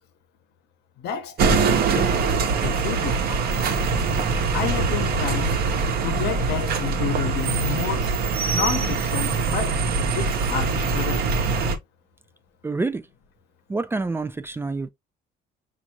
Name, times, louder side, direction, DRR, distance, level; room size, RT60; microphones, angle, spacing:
voice 1, 1.0-2.1 2.5-3.4 4.5-5.7 6.0-8.1 8.5-9.8 10.1-11.3, left 9 dB, 80° left, 0.9 m, -30 dB
sound 1, 1.4-11.8, right 4 dB, 65° right, 0.9 m, -23 dB
voice 2, 12.6-13.0 13.7-14.9, right 3 dB, 15° right, 0.3 m, -27 dB
6.1 x 2.5 x 2.8 m
cardioid pair, 110°, 17 cm